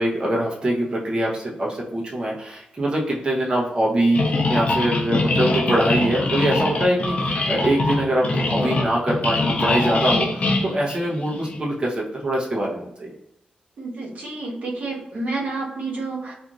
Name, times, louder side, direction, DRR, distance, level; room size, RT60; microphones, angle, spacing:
voice 1, 0.0-13.1, right 1 dB, 35° right, -4 dB, 0.7 m, -23 dB
sound 1, 4.1-11.6, left 2 dB, 55° left, 0.6 m, -23 dB
voice 2, 13.8-16.3, right 3 dB, 70° right, -3 dB, 1.0 m, -29 dB
2.5 x 2.4 x 2.9 m, 0.83 s
wide cardioid pair, 95°, 3 cm